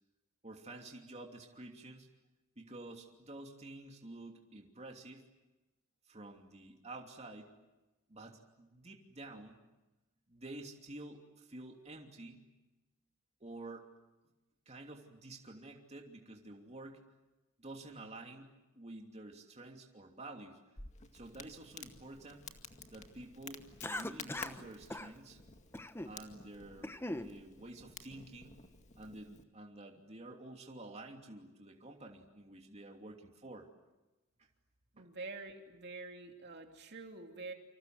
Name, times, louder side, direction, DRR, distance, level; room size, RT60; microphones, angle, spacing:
voice 1, 0.4-2.1 2.6-5.2 6.1-7.5 8.1-9.6 10.3-12.4 13.4-13.9 14.7-17.0 17.6-18.5 18.7-20.6 21.1-22.5 22.9-25.4 26.0-28.6 29.0-33.7 35.0-35.1, right 2 dB, 30° right, 1 dB, 2.9 m, -50 dB
Crackle, 20.8-29.4, left 4 dB, 35° left, 2.1 m, -52 dB
Cough, 23.8-24.6 24.9-25.1 25.7-26.2 26.6-27.3, left 1 dB, 10° left, 0.9 m, -40 dB
voice 2, 34.9-37.5, right 3 dB, 50° right, 3 dB, 2.8 m, -46 dB
29.0 x 26.5 x 7.8 m, 1.1 s
head